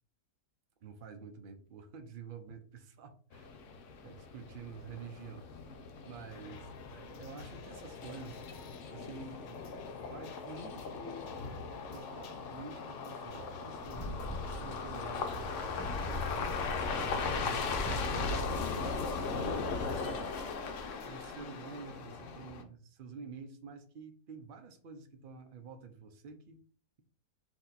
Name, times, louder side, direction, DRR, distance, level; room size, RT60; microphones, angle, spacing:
voice 1, 0.8-3.5 4.0-5.5 6.1-8.4 8.9-11.3 11.9-17.9 19.3-20.3 21.0-26.6, right 5 dB, 75° right, 6 dB, 0.4 m, -49 dB
sound 1, 3.3-22.6, left 4 dB, 60° left, 0.9 m, -39 dB
sound 2, 6.3-21.1, left 5 dB, 75° left, 1.2 m, -51 dB
sound 3, 13.7-20.0, left 1 dB, 15° left, 0.6 m, -41 dB
4.5 x 2.9 x 4.0 m, 0.43 s
omnidirectional pair, 1.8 m